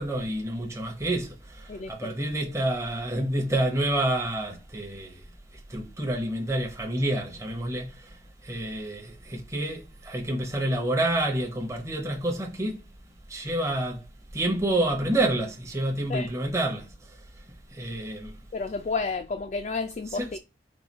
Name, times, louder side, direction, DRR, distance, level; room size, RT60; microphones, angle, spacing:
voice 1, 0.0-5.2 5.7-8.2 8.4-12.8 13.3-14.0 14.3-16.9 17.7-18.3 20.1-20.4, right 1 dB, 15° right, 0.8 m, -28 dB
voice 2, 1.7-2.1 16.1-16.3 18.5-20.4, left 4 dB, 40° left, 0.3 m, -31 dB
4.8 x 2.3 x 4.0 m
head